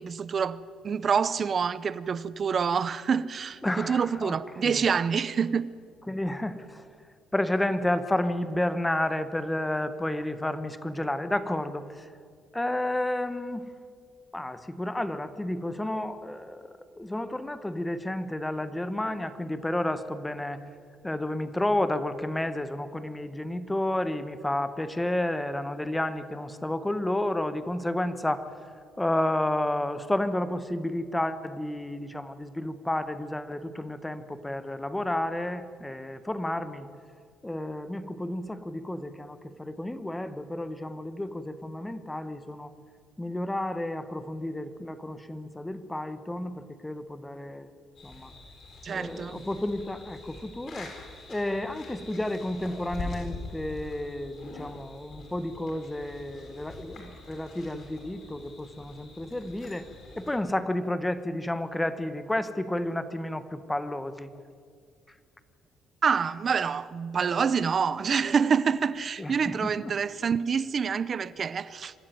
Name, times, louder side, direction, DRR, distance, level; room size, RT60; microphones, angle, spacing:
voice 1, 0.0-5.7 48.8-49.5 66.0-71.9, right 6 dB, 35° right, 0.7 m, -27 dB
voice 2, 3.6-4.4 4.6-4.8 6.1-6.8 7.3-12.1 12.5-13.7 14.3-20.6 21.0-28.4 29.0-36.9 37.4-42.7 43.2-47.7 48.0-48.3 48.9-50.9 51.3-59.9 60.2-64.3 69.2-69.9, left 1 dB, 10° left, 1.1 m, -31 dB
sound 1, 47.9-60.3, left 3 dB, 45° left, 7.6 m, -44 dB
26.0 x 13.5 x 9.4 m
cardioid pair, 150°, 0 cm